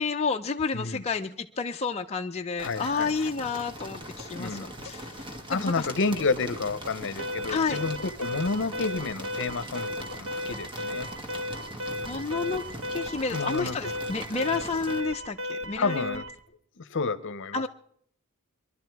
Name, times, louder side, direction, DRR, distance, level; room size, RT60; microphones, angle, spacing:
voice 1, 0.0-5.2 5.5-5.9 7.5-7.8 12.1-12.6 12.9-16.2 17.5-17.7, left 4 dB, 30° left, 4 dB, 0.5 m, -30 dB
voice 2, 2.6-3.3 4.4-4.7 5.5-11.1 13.3-14.1 15.8-16.2 16.8-17.7, left 4 dB, 60° left, 15 dB, 0.8 m, -30 dB
sound 1, 2.6-15.0, right 1 dB, 25° right, 1.5 m, -41 dB
sound 2, 4.0-9.2, left 2 dB, 40° right, 1.7 m, -44 dB
Alarm, 7.2-16.4, left 1 dB, 80° right, 1.5 m, -35 dB
22.0 x 11.5 x 4.7 m, 0.65 s
head